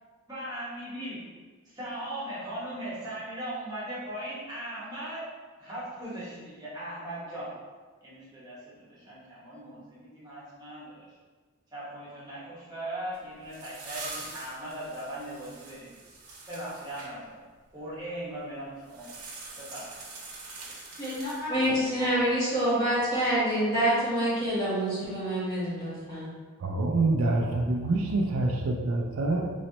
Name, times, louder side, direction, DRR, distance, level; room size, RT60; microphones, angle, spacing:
voice 1, 0.3-1.2 1.6-5.2 5.6-7.5 8.0-11.0 11.7-16.0 16.5-17.4 17.7-19.1 19.5-19.9, right 1 dB, 15° right, -9 dB, 1.1 m, -39 dB
sound 1, 13.1-17.1 18.8-21.8, right 3 dB, 85° right, 0.9 m, -44 dB
voice 2, 21.0-26.3, right 1 dB, 20° left, -10 dB, 1.4 m, -27 dB
voice 3, 26.6-29.5, right 2 dB, 70° right, 1 dB, 0.4 m, -26 dB
4.1 x 3.1 x 2.8 m, 1.4 s
head